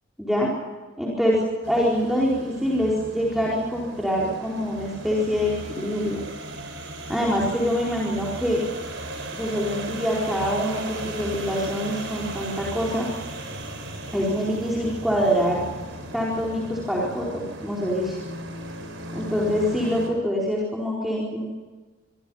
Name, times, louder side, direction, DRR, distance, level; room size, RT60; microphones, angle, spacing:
voice 1, 0.2-0.5 1.0-6.2 7.1-8.6 9.3-13.1 14.1-15.6 16.1-18.2 19.1-21.5, equal, ahead, -5 dB, 4.4 m, -25 dB
sound 1, 1.6-20.1, right 1 dB, 60° right, 5.9 m, -37 dB
26.0 x 24.5 x 5.6 m, 1.3 s
head